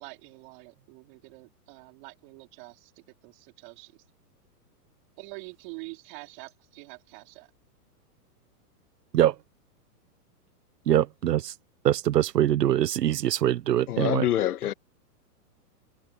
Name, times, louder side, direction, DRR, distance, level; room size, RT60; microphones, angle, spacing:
voice 1, 0.0-2.9 3.2-4.0 5.2-7.5, right 28 dB, 30° right, 4.0 m, -45 dB
voice 2, 10.9-11.5 11.8-14.3, right 12 dB, 85° right, 1.3 m, -23 dB
voice 3, 13.9-14.7, left 12 dB, 65° left, 1.7 m, -26 dB
hypercardioid pair, 170°, 48 cm